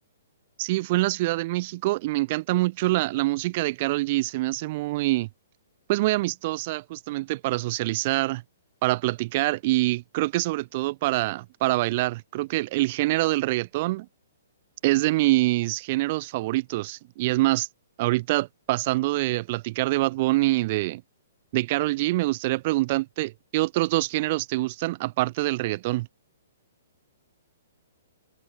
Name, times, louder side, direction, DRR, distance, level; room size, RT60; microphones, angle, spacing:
voice 1, 0.6-5.3 5.9-8.4 8.8-14.1 14.8-17.7 18.0-21.0 21.5-26.1, right 19 dB, 40° right, 1.4 m, -25 dB
open air
hypercardioid pair, 145°, 0 cm